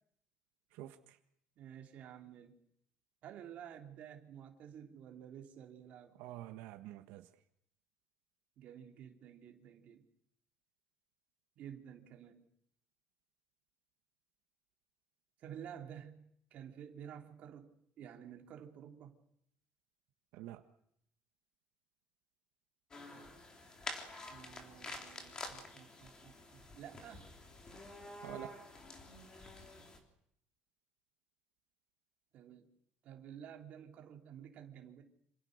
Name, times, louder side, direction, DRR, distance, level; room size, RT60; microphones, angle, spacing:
voice 1, 0.7-1.2 6.2-7.3 20.3-20.6 28.2-28.6, right 14 dB, 80° right, 7 dB, 1.6 m, -47 dB
voice 2, 1.6-2.6 3.2-6.2 8.6-10.0 11.6-12.4 15.4-19.2 24.3-27.3 32.3-32.7 33.0-35.0, right 9 dB, 45° right, 3 dB, 3.2 m, -52 dB
sound 1, 22.9-30.0, left 2 dB, 20° left, 3.8 m, -49 dB
27.5 x 27.0 x 6.6 m, 0.71 s
cardioid pair, 180°, 4 cm